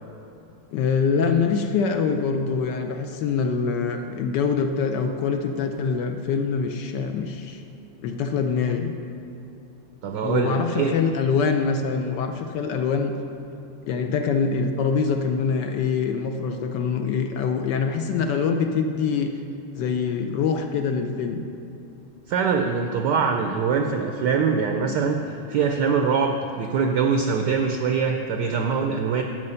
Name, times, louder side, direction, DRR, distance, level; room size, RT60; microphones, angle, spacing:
voice 1, 0.7-7.6 8.0-8.9 10.2-13.1 13.8-19.3 19.7-21.4, left 5 dB, 75° left, 5 dB, 1.0 m, -24 dB
voice 2, 10.0-10.9 22.3-25.2 25.5-29.2, right 5 dB, 75° right, 5 dB, 1.0 m, -23 dB
11.0 x 7.5 x 5.6 m, 2.9 s
omnidirectional pair, 2.3 m